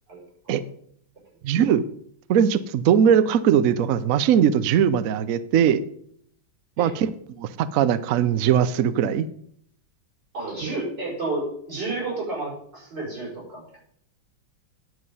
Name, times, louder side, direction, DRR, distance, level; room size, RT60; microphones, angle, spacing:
voice 1, 1.4-1.8 2.3-5.8 6.8-9.3 10.6-10.7, right 8 dB, 80° right, 14 dB, 0.7 m, -20 dB
voice 2, 10.3-13.8, right 2 dB, 60° right, -5 dB, 6.4 m, -31 dB
10.5 x 7.9 x 5.5 m, 0.65 s
omnidirectional pair, 2.2 m